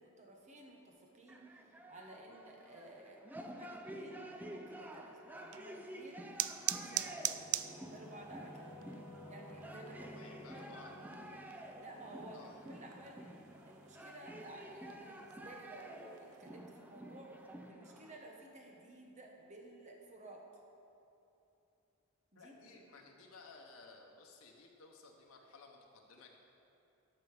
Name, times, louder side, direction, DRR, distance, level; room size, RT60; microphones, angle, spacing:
voice 1, 0.0-6.2 6.6-8.7 9.3-10.2 10.5-10.7 11.6-20.5 22.3-22.8, right 1 dB, 35° right, 1 dB, 1.1 m, -54 dB
sound 1, 1.3-18.2, right 1 dB, 10° right, 0.4 m, -51 dB
sound 2, 5.3-16.5, right 14 dB, 85° right, 0.3 m, -45 dB
Singing / Musical instrument, 6.3-15.4, left 1 dB, 10° left, 1.7 m, -56 dB
voice 2, 10.0-10.9 12.3-12.5 22.3-26.4, left 4 dB, 85° left, 1 dB, 0.9 m, -57 dB
12.5 x 5.5 x 4.9 m, 2.9 s
head